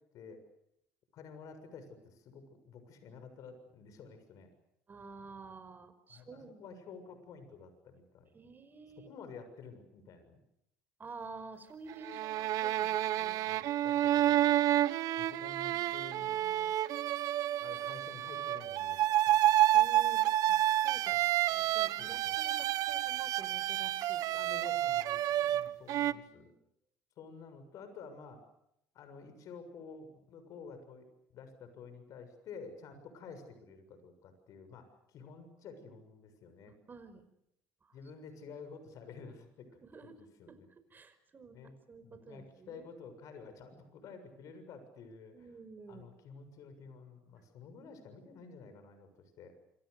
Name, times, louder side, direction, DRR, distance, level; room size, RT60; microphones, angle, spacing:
voice 1, 1.1-4.5 6.1-8.3 9.1-10.4 13.5-14.5 15.2-16.4 17.6-19.5 21.1-21.2 22.0-22.4 24.3-26.5 27.2-28.4 28.9-31.1 31.3-36.7 37.9-39.7 40.4-40.7 41.5-41.7 42.0-45.5 45.9-49.5, left 5 dB, 60° left, 9 dB, 6.9 m, -51 dB
voice 2, 4.9-6.8 8.3-9.2 11.0-13.4 15.7-15.9 16.1-16.8 19.7-24.2 26.0-26.5 36.7-37.2 37.8-38.0 39.8-42.9 45.3-46.1, right 4 dB, 30° right, 11 dB, 5.4 m, -51 dB
sound 1, 11.9-26.1, right 13 dB, 65° right, 1.3 m, -29 dB
27.0 x 26.5 x 6.8 m, 0.77 s
supercardioid pair, 95°, 7 cm